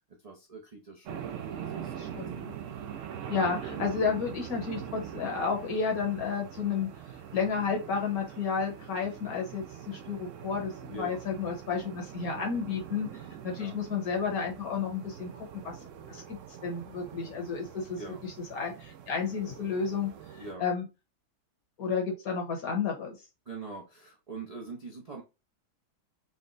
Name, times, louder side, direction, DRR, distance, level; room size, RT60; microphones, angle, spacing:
voice 1, 0.2-2.1 10.9-11.2 13.6-13.7 18.0-18.2 20.4-20.6 23.5-25.2, right 3 dB, 45° right, 0.5 m, -43 dB
sound 1, 1.1-20.5, right 9 dB, 65° right, 0.8 m, -43 dB
voice 2, 2.0-2.5 3.3-6.9 7.3-15.8 16.1-20.1 20.6-20.8 21.8-23.2, left 5 dB, 60° left, 1.5 m, -32 dB
4.0 x 2.2 x 3.9 m
omnidirectional pair, 1.7 m